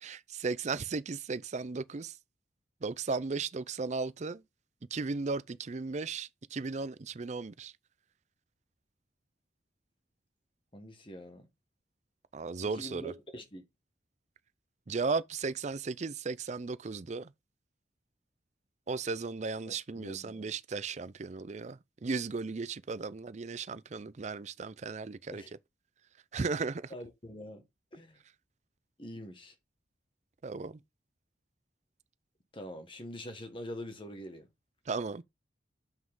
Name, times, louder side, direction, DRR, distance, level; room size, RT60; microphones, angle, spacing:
voice 1, 0.0-2.2 2.8-4.4 4.9-7.7 12.3-13.1 14.9-17.3 18.9-25.4 26.3-26.9 30.4-30.8 34.9-35.2, right 4 dB, 40° right, 0.5 m, -35 dB
voice 2, 10.7-11.5 12.6-13.6 19.7-20.5 25.3-25.5 26.9-27.6 27.9-28.1 29.0-29.5 32.5-34.5, left 1 dB, 30° left, 1.5 m, -45 dB
7.4 x 6.0 x 3.7 m
head